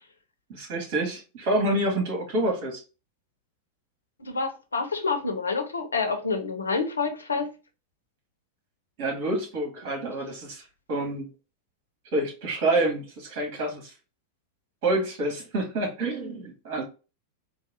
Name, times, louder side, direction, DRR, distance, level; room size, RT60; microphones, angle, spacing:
voice 1, 0.5-2.8 9.0-10.6 10.9-11.3 12.1-13.9 14.8-16.8, right 2 dB, 45° right, 1.6 m, -27 dB
voice 2, 4.2-7.6, left 4 dB, 75° left, 0.7 m, -28 dB
4.0 x 2.2 x 3.6 m
figure-of-eight pair, 90°, 0 cm